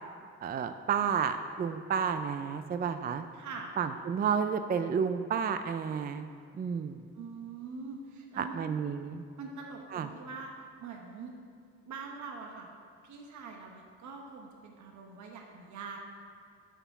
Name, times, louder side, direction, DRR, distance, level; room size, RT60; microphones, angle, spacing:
voice 1, 0.4-3.3 3.8-6.3 6.6-7.0 8.4-9.2 9.9-10.1, right 7 dB, 30° right, 9 dB, 0.4 m, -31 dB
voice 2, 3.3-3.7 7.1-8.7 9.4-11.3 11.8-12.7 13.0-16.0, right 4 dB, 70° right, 1 dB, 1.1 m, -44 dB
8.1 x 5.8 x 5.9 m, 2.3 s
cardioid pair, 90°, 30 cm